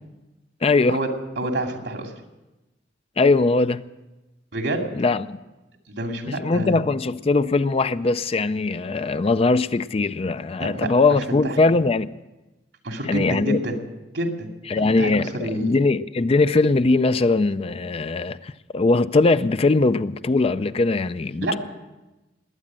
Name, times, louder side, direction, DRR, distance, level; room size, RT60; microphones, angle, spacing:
voice 1, 0.6-1.0 3.2-3.8 4.9-5.4 6.3-12.2 13.1-13.6 14.7-21.6, left 3 dB, 35° left, 0.4 m, -21 dB
voice 2, 1.4-2.1 4.5-4.8 5.9-6.8 10.7-10.9 11.4-11.6 12.8-13.8 14.1-14.5 14.8-15.8 21.4-21.6, right 1 dB, 90° right, 2.6 m, -27 dB
20.5 x 8.8 x 7.5 m
head